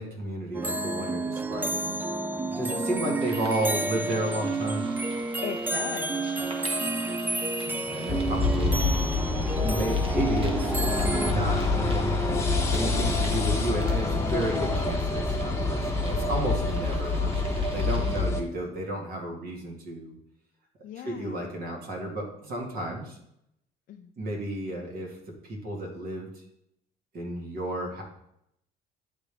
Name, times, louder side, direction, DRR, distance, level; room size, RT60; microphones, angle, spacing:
voice 1, 0.0-2.0 2.5-4.8 7.6-12.2 12.7-20.2 21.0-23.2 24.2-26.4 27.1-28.0, right 1 dB, 60° right, 0 dB, 2.2 m, -33 dB
sound 1, 0.5-11.3, right 2 dB, 10° right, 0.3 m, -30 dB
sound 2, 3.2-18.2, right 2 dB, 30° right, 1.3 m, -46 dB
voice 2, 5.4-6.4 7.1-7.5 20.8-21.4 23.9-24.1, left 9 dB, 55° left, 4 dB, 0.5 m, -39 dB
sound 3, 8.1-18.4, left 3 dB, 15° left, 1.0 m, -26 dB
10.5 x 3.6 x 3.5 m, 0.77 s
cardioid pair, 110°, 17 cm